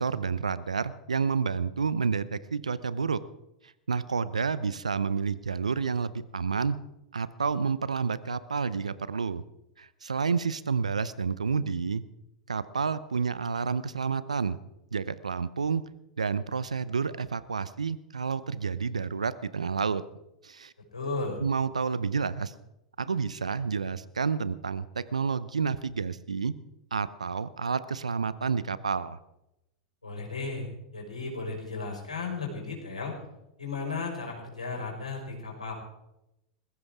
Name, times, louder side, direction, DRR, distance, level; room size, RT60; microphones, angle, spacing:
voice 1, 0.0-3.2 3.6-6.8 7.1-9.4 9.8-12.0 12.5-14.6 14.9-15.8 16.2-20.0 20.4-20.7 21.4-22.5 23.0-26.5 26.9-29.2, right 5 dB, 85° right, 17 dB, 0.7 m, -29 dB
voice 2, 20.9-21.4 30.0-30.7 30.9-33.2 33.6-35.7, left 3 dB, 90° left, -1 dB, 5.3 m, -34 dB
20.5 x 15.5 x 3.6 m, 0.87 s
figure-of-eight pair, 95°, 4 cm